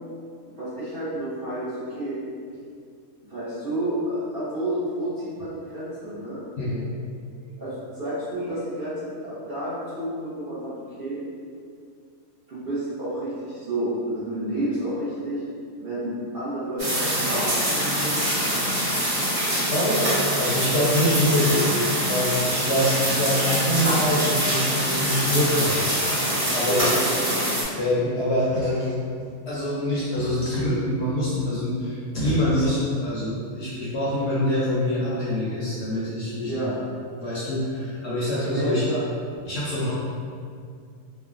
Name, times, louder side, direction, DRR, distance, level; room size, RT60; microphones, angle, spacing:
voice 1, 0.6-2.2 3.3-6.4 7.6-10.7 11.0-11.2 12.5-15.4 15.8-18.2 26.7-26.8 36.5-36.7 38.5-39.0, right 1 dB, 50° right, -11 dB, 0.7 m, -30 dB
voice 2, 6.6-7.1 7.4-7.6 19.7-25.9 26.5-26.9 27.8-29.0 29.5-36.7 37.1-38.9 39.5-39.9, left 1 dB, 65° left, -9 dB, 0.7 m, -25 dB
sound 1, 16.8-27.6, equal, 35° right, 1.1 m, -24 dB
3.1 x 2.1 x 2.4 m, 2.3 s
omnidirectional pair, 1.5 m